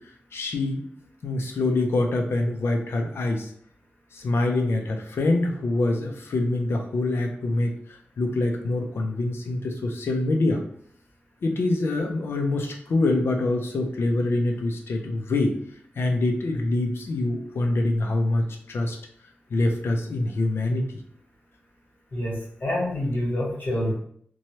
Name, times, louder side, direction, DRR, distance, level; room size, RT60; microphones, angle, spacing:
voice 1, 0.3-0.8 1.2-3.5 4.1-7.7 8.2-10.6 11.4-15.6 16.0-19.0 19.5-20.9, left 2 dB, 85° left, 3 dB, 0.5 m, -25 dB
voice 2, 22.1-23.9, left 1 dB, 55° left, -5 dB, 1.2 m, -27 dB
3.0 x 2.2 x 2.7 m, 0.63 s
wide cardioid pair, 140°, 4 cm